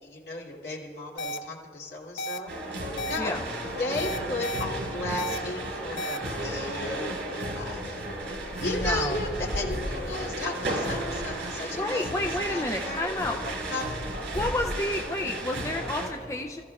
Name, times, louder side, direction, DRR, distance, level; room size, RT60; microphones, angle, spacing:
voice 1, 0.0-8.0 8.6-13.2 13.7-13.9, left 2 dB, 65° left, -3 dB, 2.8 m, -35 dB
sound 1, 1.2-1.4 2.2-2.4 3.0-3.2 4.0-4.6 5.2-5.4 6.0-6.2, equal, 90° left, 0.7 m, -32 dB
sound 2, 2.5-16.1, right 1 dB, 80° right, 4.4 m, -33 dB
voice 2, 8.6-9.2 11.8-13.4 14.3-16.6, left 2 dB, 15° left, 2 dB, 0.4 m, -30 dB
28.5 x 14.5 x 2.4 m, 2.4 s
head